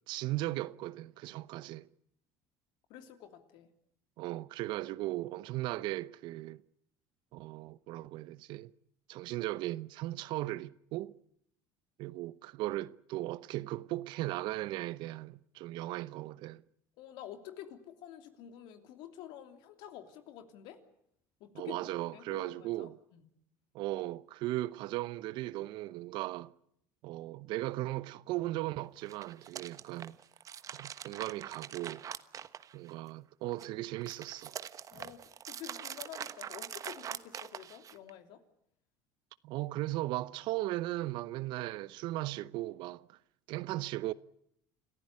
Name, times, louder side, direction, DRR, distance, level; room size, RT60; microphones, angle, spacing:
voice 1, 0.1-1.9 4.2-6.6 7.3-8.7 9.1-11.1 12.0-16.6 21.5-23.0 23.7-26.5 27.0-30.2 30.7-32.0 32.7-34.6 39.4-43.2 43.5-44.1, right 17 dB, 65° right, 0.9 m, -37 dB
voice 2, 2.9-3.7 17.0-20.8 21.4-21.8 22.1-23.3 34.9-38.4, left 11 dB, 70° left, 3.1 m, -49 dB
sound 1, 29.0-33.1 33.5-38.1, right 9 dB, 40° right, 1.2 m, -44 dB
27.5 x 15.0 x 9.9 m
supercardioid pair, 90°, 8 cm